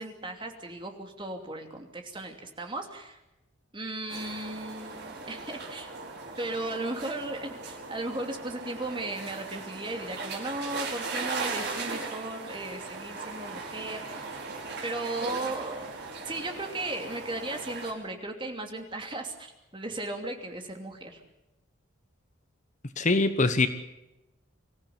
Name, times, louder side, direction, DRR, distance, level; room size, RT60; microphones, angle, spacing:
voice 1, 0.0-3.2 3.7-5.0 5.3-5.9 6.4-14.2 14.8-15.9 16.2-21.2, right 2 dB, 25° right, 4 dB, 2.8 m, -36 dB
sound 1, 4.1-17.9, right 3 dB, 55° right, 5.2 m, -38 dB
voice 2, 23.0-23.7, left 3 dB, 40° left, 10 dB, 1.1 m, -23 dB
25.0 x 15.0 x 8.7 m, 0.95 s
head